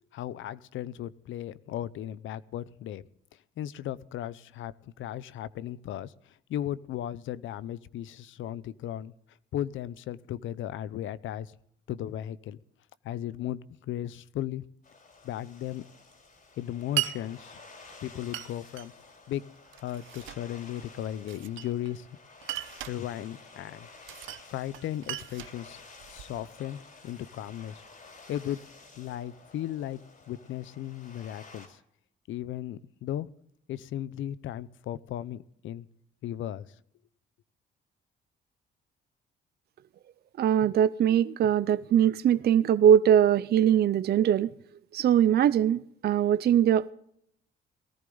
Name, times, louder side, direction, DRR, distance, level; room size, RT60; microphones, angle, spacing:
voice 1, 0.1-3.0 3.6-9.1 9.5-11.5 11.9-12.6 13.0-14.7 15.2-15.8 16.6-17.6 18.0-18.9 19.3-19.4 19.8-22.1 22.9-23.9 24.5-25.8 26.1-27.8 28.3-28.6 29.0-30.0 30.3-31.8 32.3-33.3 33.7-35.9 36.2-36.7, left 11 dB, 80° left, 0.7 m, -36 dB
sound 1, 14.8-31.7, left 3 dB, 45° left, 4.9 m, -52 dB
Glass, 17.0-17.2 18.3-18.9 19.7-20.5 21.3-22.0 22.4-23.0 24.0-24.5 24.7-26.4, right 14 dB, 80° right, 0.8 m, -36 dB
voice 2, 40.4-44.5 44.9-46.9, right 9 dB, 55° right, 0.5 m, -22 dB
19.0 x 14.0 x 3.9 m
cardioid pair, 90°, 20 cm